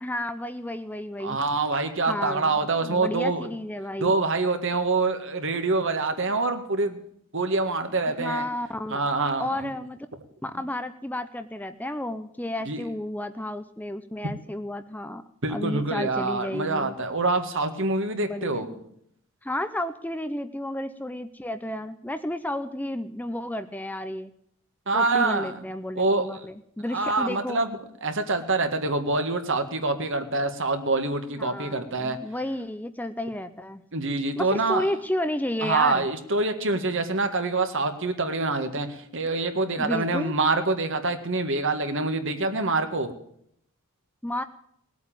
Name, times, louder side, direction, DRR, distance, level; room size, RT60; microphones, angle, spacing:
voice 1, 0.0-1.4 2.1-4.1 8.1-9.0 9.4-10.0 10.4-15.2 15.5-16.9 18.1-18.8 19.4-24.3 24.9-27.6 31.4-33.8 34.4-36.1 39.8-40.3 44.2-44.4, left 1 dB, 5° left, 10 dB, 0.6 m, -32 dB
voice 2, 1.2-3.5 4.0-7.0 7.3-8.5 8.9-9.7 12.7-12.8 15.4-18.7 24.9-25.6 26.0-26.3 26.9-32.2 33.9-34.8 35.6-43.1, right 3 dB, 60° right, 7 dB, 1.9 m, -26 dB
19.5 x 8.3 x 8.8 m, 0.70 s
head